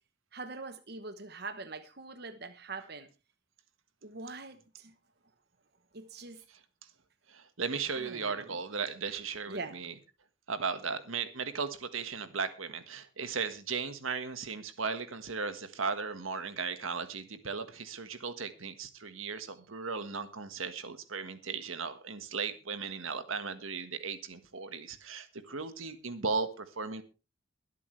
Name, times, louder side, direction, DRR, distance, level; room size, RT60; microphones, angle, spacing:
voice 1, 0.3-3.1 4.0-4.9 5.9-6.4 7.9-8.6 9.5-9.8, right 3 dB, 50° right, 9 dB, 1.1 m, -43 dB
voice 2, 7.3-9.9 10.5-27.0, right 5 dB, 85° right, 10 dB, 1.5 m, -36 dB
23.0 x 8.4 x 3.3 m, 0.30 s
head